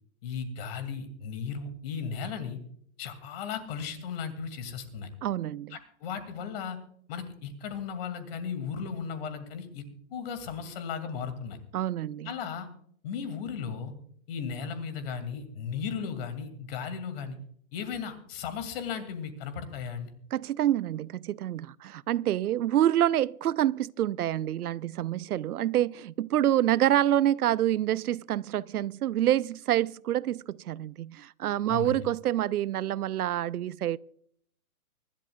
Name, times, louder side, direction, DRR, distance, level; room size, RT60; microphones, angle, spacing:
voice 1, 0.2-2.6 3.0-5.1 5.7-6.8 7.1-9.8 10.1-11.6 12.2-12.7 13.0-13.9 14.3-17.4 17.7-20.1 31.7-32.0, left 6 dB, 40° left, 2.5 m, -36 dB
voice 2, 5.2-5.8 11.7-12.4 20.3-34.0, right 12 dB, 90° right, 0.6 m, -27 dB
24.5 x 12.0 x 2.4 m
hypercardioid pair, 155°, 44 cm